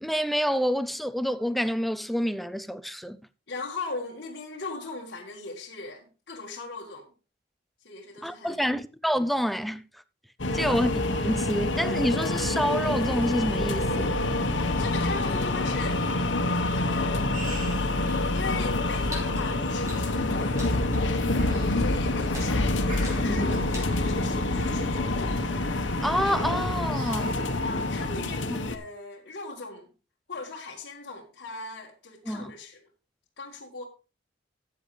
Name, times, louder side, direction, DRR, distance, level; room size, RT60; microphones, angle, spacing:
voice 1, 0.0-3.2 8.2-9.8 10.5-14.1 22.6-22.7 23.3-23.5 26.0-27.4 32.3-32.5, equal, ahead, 0.4 m, -28 dB
voice 2, 3.5-7.1 7.8-8.6 10.4-10.8 14.5-16.0 16.7-17.4 18.1-21.0 21.7-22.7 23.0-25.4 27.6-29.9 30.3-32.9 33.4-33.8, left 3 dB, 60° left, 1.8 m, -39 dB
sound 1, 10.4-28.8, left 2 dB, 80° left, 1.2 m, -27 dB
sound 2, 14.6-27.9, right 2 dB, 45° right, 2.5 m, -47 dB
sound 3, 18.7-24.0, equal, 15° right, 4.8 m, -46 dB
13.5 x 8.1 x 3.3 m
head